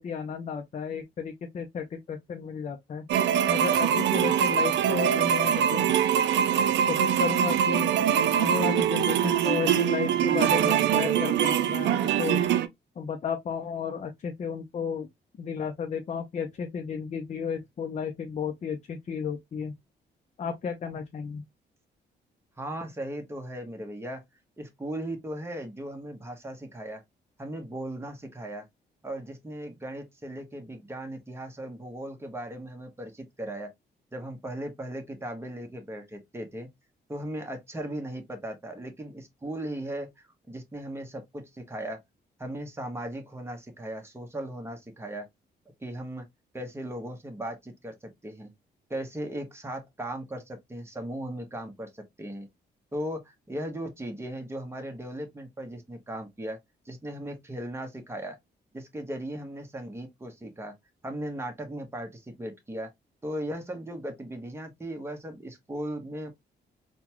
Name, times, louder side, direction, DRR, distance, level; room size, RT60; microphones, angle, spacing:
voice 1, 0.0-3.1 3.5-5.9 6.9-7.9 8.3-12.4 13.0-15.1 15.4-19.7 20.4-21.4, left 6 dB, 40° left, 0.6 m, -33 dB
sound 1, 3.1-12.7, right 9 dB, 85° right, 0.5 m, -23 dB
voice 2, 22.6-24.2 24.6-27.0 27.4-28.7 29.0-33.7 34.1-36.7 37.1-42.0 42.4-45.3 45.8-46.3 46.5-48.5 48.9-52.5 52.9-56.6 56.8-58.4 58.7-60.7 61.0-62.9 63.2-66.3, right 1 dB, 15° right, 1.0 m, -37 dB
3.8 x 2.3 x 2.9 m
cardioid pair, 115°, 18 cm